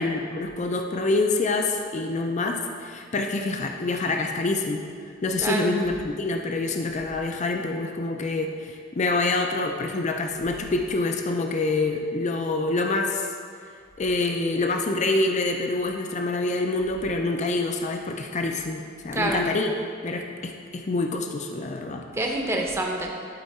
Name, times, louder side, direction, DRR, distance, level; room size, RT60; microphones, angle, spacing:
voice 1, 0.0-4.8 5.2-13.3 14.0-19.7 20.0-22.0, left 2 dB, 35° left, 4 dB, 0.5 m, -26 dB
voice 2, 5.4-5.8 19.1-19.5 22.1-23.1, right 1 dB, 15° right, 1 dB, 0.7 m, -26 dB
11.5 x 4.3 x 4.2 m, 2.1 s
head